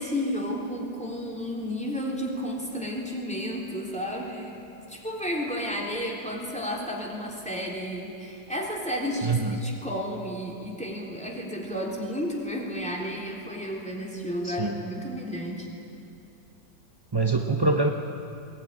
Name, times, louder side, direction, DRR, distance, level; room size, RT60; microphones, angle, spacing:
voice 1, 0.0-15.7, equal, 5° left, -2 dB, 3.7 m, -32 dB
voice 2, 9.2-9.6 14.4-14.8 17.1-17.9, right 3 dB, 30° right, 3 dB, 0.4 m, -24 dB
21.5 x 19.0 x 9.9 m, 2.7 s
omnidirectional pair, 2.0 m